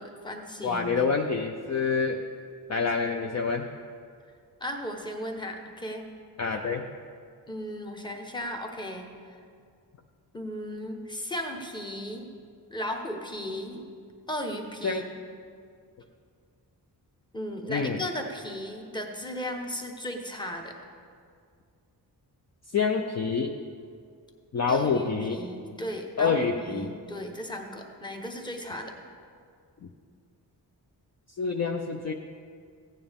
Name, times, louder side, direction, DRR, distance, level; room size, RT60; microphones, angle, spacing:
voice 1, 0.0-1.0 4.6-6.1 7.5-9.4 10.3-12.3 12.7-13.8 14.3-15.1 17.3-20.7 24.7-28.9, equal, 10° left, 2 dB, 1.0 m, -36 dB
voice 2, 0.6-2.2 2.7-3.7 6.4-6.8 14.8-15.0 17.7-18.0 22.7-23.5 24.5-25.4 26.2-26.9 31.4-32.1, left 5 dB, 40° left, 3 dB, 0.5 m, -27 dB
15.5 x 9.2 x 3.5 m, 2.2 s
wide cardioid pair, 145°, 41 cm